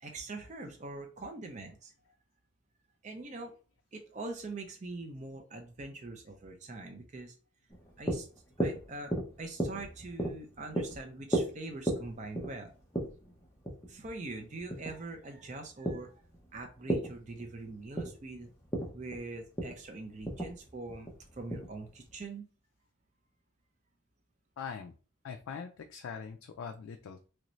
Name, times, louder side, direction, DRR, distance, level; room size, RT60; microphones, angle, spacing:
voice 1, 0.0-1.9 3.0-3.5 3.9-7.3 8.0-8.3 8.6-9.1 9.4-12.7 13.9-16.1 16.5-18.5 18.9-22.5, right 2 dB, 35° right, 3 dB, 0.4 m, -43 dB
sound 1, 7.7-22.2, right 1 dB, 10° left, 0.7 m, -37 dB
voice 2, 24.6-24.9 25.2-27.3, left 6 dB, 80° left, 5 dB, 0.3 m, -42 dB
3.1 x 2.6 x 3.0 m, 0.37 s
head